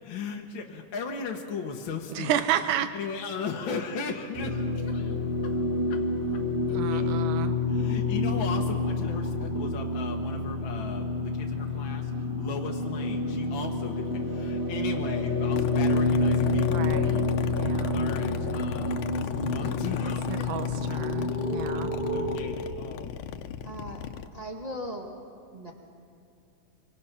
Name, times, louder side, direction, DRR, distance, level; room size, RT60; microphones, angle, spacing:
voice 1, 0.0-5.2 5.4-5.6 5.9-6.0 6.3-6.4 6.7-7.2 7.7-20.6 20.9-21.0 21.7-21.8 22.1-23.1, left 5 dB, 50° left, 1 dB, 1.6 m, -37 dB
voice 2, 2.2-2.9 6.7-7.5 16.7-18.0 19.6-19.7 20.3-21.9, right 11 dB, 85° right, 10 dB, 2.4 m, -31 dB
sound 1, 4.3-22.4, left 2 dB, 10° right, 1.6 m, -28 dB
sound 2, 15.5-24.3, left 9 dB, 80° left, 2.3 m, -37 dB
voice 3, 23.6-24.0 24.3-25.1 25.5-25.7, equal, 30° right, 0 dB, 0.7 m, -37 dB
25.5 x 24.0 x 5.9 m, 2.4 s
omnidirectional pair, 3.5 m